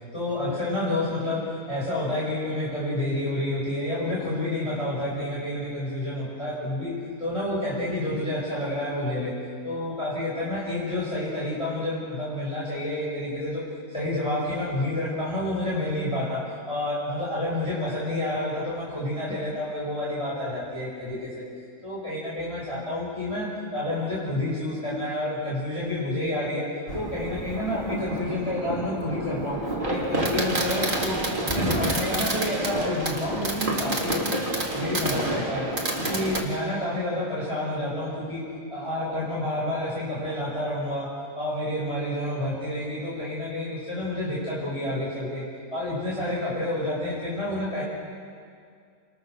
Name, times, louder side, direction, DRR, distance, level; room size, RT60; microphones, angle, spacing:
voice 1, 0.1-6.9 7.2-9.3 9.6-13.6 13.9-21.4 21.8-26.7 26.9-34.4 34.7-35.7 36.0-38.4 38.7-41.1 41.4-45.4 45.7-47.8, left 1 dB, 20° left, -7 dB, 5.6 m, -29 dB
Fireworks, 26.9-36.4, right 1 dB, 30° right, 2.8 m, -29 dB
28.5 x 22.5 x 6.5 m, 2.2 s
omnidirectional pair, 1.7 m